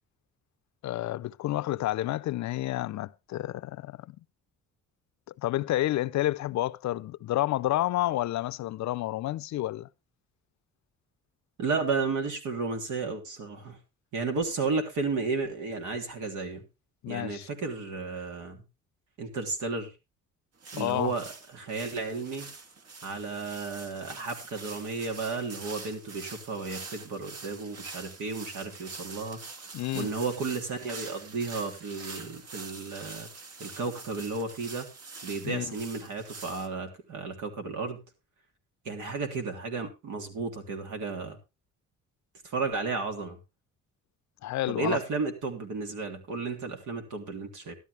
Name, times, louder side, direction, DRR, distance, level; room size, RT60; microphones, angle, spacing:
voice 1, 0.8-4.2 5.4-9.9 17.0-17.5 20.8-21.1 29.7-30.1 35.4-35.7 44.4-45.0, left 15 dB, 65° left, 0.5 m, -30 dB
voice 2, 11.6-13.8 14.1-16.6 17.1-18.6 19.2-19.9 20.7-22.5 23.0-33.3 33.6-34.9 35.2-38.0 38.8-41.4 42.4-43.4 44.7-47.8, right 4 dB, 80° right, 3.3 m, -33 dB
sound 1, 20.6-36.7, right 4 dB, 55° right, 2.0 m, -45 dB
13.0 x 12.0 x 3.3 m
cardioid pair, 90°, 30 cm